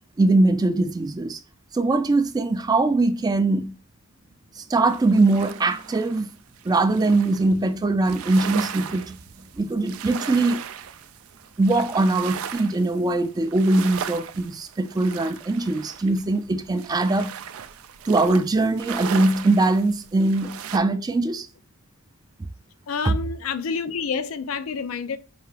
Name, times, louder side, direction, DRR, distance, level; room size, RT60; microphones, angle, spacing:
voice 1, 0.2-1.4 1.7-3.8 4.5-6.3 6.6-10.6 11.6-17.3 18.1-21.5 23.0-23.1, right 2 dB, 20° right, 0.3 m, -21 dB
sound 1, 4.9-7.6 8.0-20.8, right 8 dB, 90° right, 0.4 m, -37 dB
voice 2, 22.9-25.2, left 5 dB, 80° left, 0.4 m, -28 dB
4.7 x 2.8 x 3.2 m
head